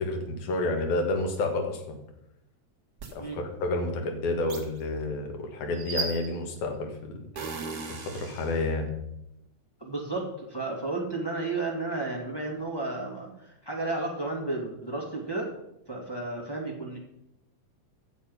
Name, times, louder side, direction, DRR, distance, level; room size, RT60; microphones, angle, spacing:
voice 1, 0.0-2.0 3.1-7.2 7.9-8.9, left 2 dB, 75° left, 3 dB, 2.8 m, -30 dB
sound 1, 3.0-3.1 4.5-4.6 5.7-6.5 7.3-8.6, right 4 dB, 40° right, 1.6 m, -35 dB
voice 2, 9.8-15.5 15.9-17.0, right 2 dB, 10° left, -3 dB, 1.8 m, -32 dB
11.5 x 7.3 x 5.5 m, 0.83 s
omnidirectional pair, 3.5 m